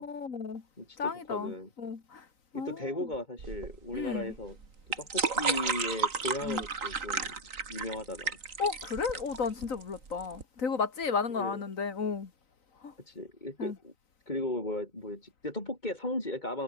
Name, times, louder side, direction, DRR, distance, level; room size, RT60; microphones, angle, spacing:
voice 1, 0.0-0.6 1.0-2.3 2.5-3.1 3.9-4.3 6.4-6.6 8.6-12.3 12.8-12.9 13.6-13.8, left 5 dB, 50° left, 2.2 m, -33 dB
voice 2, 0.8-1.7 2.5-4.6 5.0-7.3 7.7-8.4 11.4-11.6 13.1-13.9 14.3-16.6, left 1 dB, 25° left, 4.7 m, -36 dB
sound 1, 3.4-10.4, right 5 dB, 50° right, 2.4 m, -33 dB
omnidirectional pair, 1.8 m